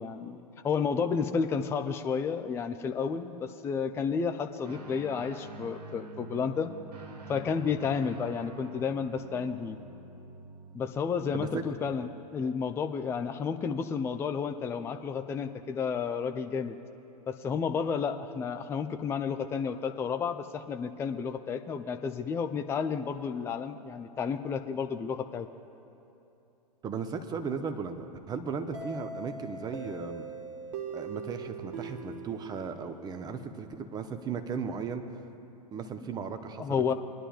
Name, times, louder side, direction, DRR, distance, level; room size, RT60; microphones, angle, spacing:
voice 1, 0.0-6.7 7.3-9.8 10.7-16.8 17.3-25.5 36.6-36.9, left 6 dB, 10° left, 7 dB, 0.4 m, -31 dB
Guitar, 4.6-12.3, right 3 dB, 75° right, 1.4 m, -47 dB
voice 2, 26.8-30.3 30.9-35.0 35.7-36.9, right 5 dB, 20° right, 8 dB, 0.8 m, -36 dB
sound 1, 28.7-33.4, right 4 dB, 55° right, 1.9 m, -41 dB
23.5 x 11.0 x 2.4 m, 2.8 s
figure-of-eight pair, 100°, 21 cm